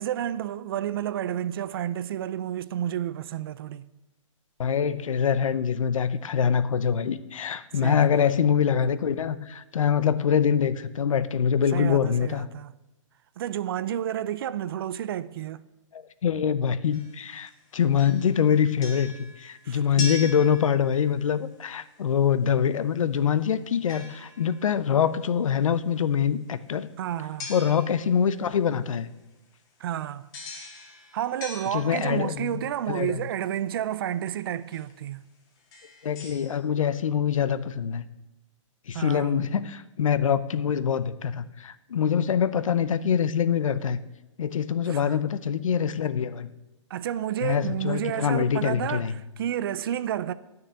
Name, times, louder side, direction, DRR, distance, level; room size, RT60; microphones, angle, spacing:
voice 1, 0.0-3.9 7.8-8.3 11.7-12.7 13.4-15.6 19.6-20.2 27.0-27.5 29.8-30.3 31.1-35.2 38.9-39.4 44.9-45.2 46.9-50.3, right 11 dB, 45° right, 0.5 m, -31 dB
voice 2, 4.6-12.5 15.9-26.9 27.5-29.1 31.7-32.5 32.9-33.2 36.0-38.0 38.9-44.0 44.4-46.5 47.4-49.2, left 8 dB, 85° left, 0.7 m, -24 dB
sound 1, 16.9-17.6 18.0-21.3 23.9-24.8 27.4-28.4 30.3-32.4 34.0-34.1 34.7-34.9 35.6-36.5, left 2 dB, 25° left, 1.8 m, -41 dB
8.8 x 6.8 x 8.0 m
hypercardioid pair, 155°, 17 cm